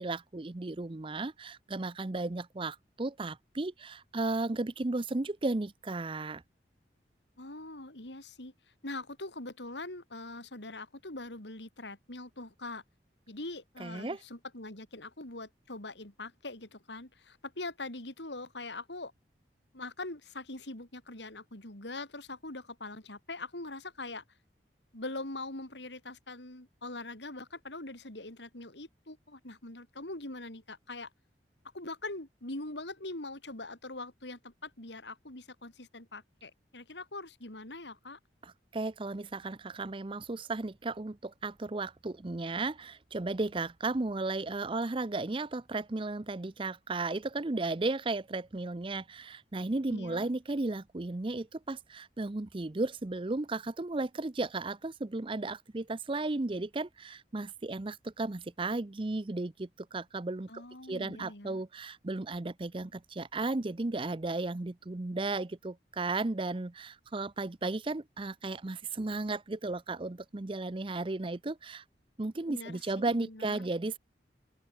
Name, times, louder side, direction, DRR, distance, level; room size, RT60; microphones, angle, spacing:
voice 1, 0.0-6.4 13.8-14.2 38.4-60.6 60.9-71.8 72.2-74.0, right 2 dB, 30° right, 0.6 m, -34 dB
voice 2, 7.4-8.5 8.8-12.8 13.3-19.1 19.7-24.2 24.9-31.1 31.7-38.2 49.9-50.3 60.5-61.6 72.5-73.7, left 2 dB, 85° left, 4.5 m, -43 dB
open air
head